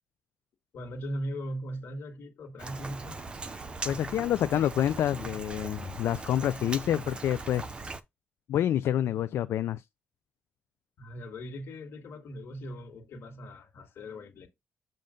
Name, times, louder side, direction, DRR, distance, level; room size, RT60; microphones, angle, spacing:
voice 1, 0.7-3.2 11.0-14.5, equal, 60° left, 1.8 m, -39 dB
Rain, 2.6-8.0, right 3 dB, 25° right, 0.5 m, -39 dB
voice 2, 3.8-7.7 8.5-9.8, left 11 dB, 75° left, 0.3 m, -28 dB
7.5 x 2.6 x 5.0 m
wide cardioid pair, 170°, 4 cm